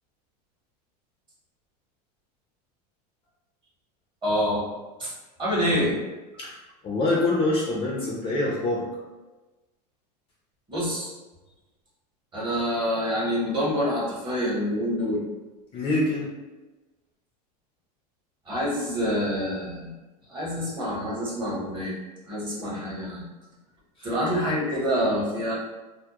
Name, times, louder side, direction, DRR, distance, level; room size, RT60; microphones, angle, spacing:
voice 1, 4.2-4.7 5.0-5.1 5.4-5.9 10.7-11.1 12.3-15.2 18.5-19.9 20.3-22.0 22.3-23.2 24.0-25.5, equal, 20° right, -6 dB, 0.9 m, -26 dB
voice 2, 6.4-8.9 15.7-16.3 24.0-24.1, left 2 dB, 25° left, -4 dB, 0.4 m, -25 dB
2.3 x 2.1 x 2.8 m, 1.2 s
supercardioid pair, 130°, 21 cm